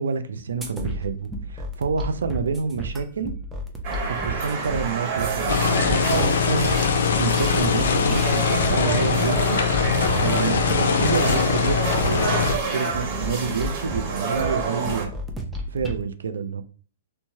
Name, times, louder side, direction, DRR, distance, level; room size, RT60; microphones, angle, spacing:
voice 1, 0.0-3.3 4.0-6.7 7.2-9.6 10.2-12.5 12.7-15.1 15.7-16.6, right 5 dB, 90° right, 0.4 m, -28 dB
sound 1, 0.6-16.0, equal, 5° right, 0.5 m, -33 dB
sound 2, 3.8-15.0, right 5 dB, 40° right, 1.2 m, -28 dB
sound 3, 5.5-12.6, left 6 dB, 75° left, 0.4 m, -22 dB
3.1 x 2.2 x 2.7 m
hypercardioid pair, 145°, 0 cm